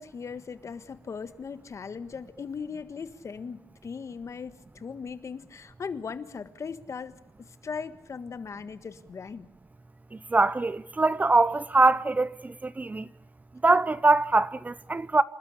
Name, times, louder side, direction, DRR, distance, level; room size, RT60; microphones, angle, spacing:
voice 1, 0.0-7.1 7.4-9.5, left 5 dB, 55° left, 1.5 m, -38 dB
voice 2, 10.3-13.1 13.6-15.2, right 3 dB, 25° right, 0.8 m, -23 dB
28.5 x 12.5 x 10.0 m
cardioid pair, 80°, 6 cm